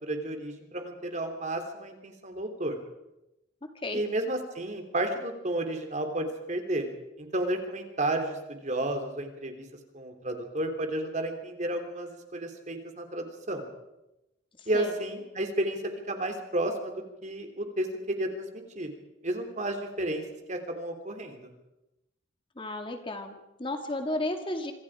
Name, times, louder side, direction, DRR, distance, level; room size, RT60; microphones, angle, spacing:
voice 1, 0.0-2.8 3.9-6.9 7.2-9.7 9.9-13.6 14.7-15.8 16.1-16.9 17.2-18.5 18.8-18.9 19.2-21.4, right 1 dB, 40° right, 5 dB, 3.5 m, -32 dB
voice 2, 14.6-14.9 22.6-24.7, left 1 dB, 25° left, 5 dB, 2.2 m, -33 dB
26.5 x 26.0 x 5.0 m, 0.92 s
head